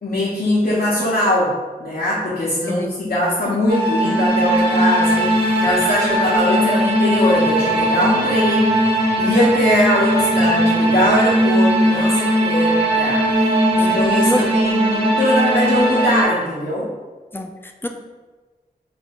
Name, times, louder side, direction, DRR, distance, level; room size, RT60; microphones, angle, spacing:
voice 1, 0.0-1.5 1.8-8.7 9.2-13.3 13.7-16.9, left 1 dB, 65° left, -8 dB, 0.9 m, -21 dB
sound 1, 3.7-16.2, right 1 dB, 30° right, 1.2 m, -18 dB
voice 2, 17.3-17.9, left 1 dB, 15° left, 4 dB, 0.4 m, -26 dB
4.3 x 2.6 x 2.5 m, 1.3 s
cardioid pair, 45°, 16 cm